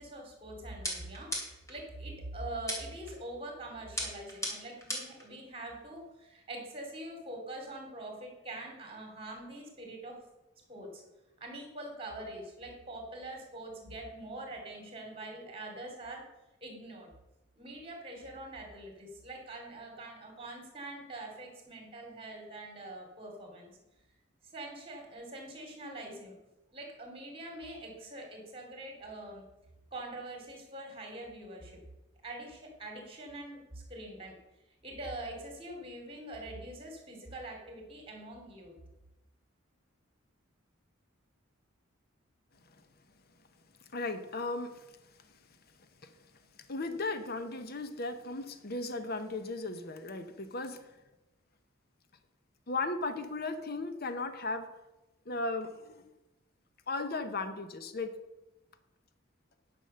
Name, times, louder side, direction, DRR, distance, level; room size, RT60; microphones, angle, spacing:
voice 1, 0.0-1.3 1.7-10.2 10.7-11.0 11.4-16.2 16.6-17.1 17.6-23.7 24.5-26.4 26.7-29.4 29.9-31.8 32.2-34.4 34.8-38.8, right 1 dB, 30° right, 2 dB, 2.6 m, -44 dB
sound 1, 0.8-1.8 2.7-3.1 4.0-5.2, equal, 15° left, 2.7 m, -37 dB
voice 2, 43.9-44.9 46.0-46.1 46.7-50.9 52.7-54.7 55.3-56.0 56.9-58.1, left 3 dB, 50° left, 9 dB, 0.8 m, -36 dB
10.0 x 6.1 x 6.6 m, 0.99 s
head